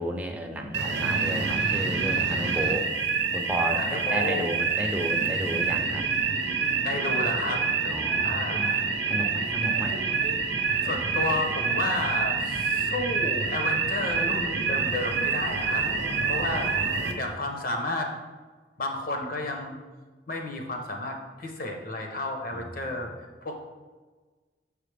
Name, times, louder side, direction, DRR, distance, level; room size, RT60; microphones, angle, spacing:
voice 1, 0.0-2.9 3.3-6.0 7.8-8.7 9.1-10.0 10.7-11.0 15.7-16.5 16.8-17.3 22.5-22.9, equal, 10° right, 2 dB, 0.6 m, -33 dB
sound 1, 0.7-17.1, right 5 dB, 80° right, 0.7 m, -27 dB
voice 2, 3.8-4.5 6.8-7.7 8.2-8.8 10.8-15.9 16.3-16.7 17.2-18.2 18.8-19.8 20.3-23.1 23.4-23.6, left 2 dB, 55° left, 3 dB, 0.9 m, -31 dB
7.2 x 5.0 x 3.4 m, 1.3 s
head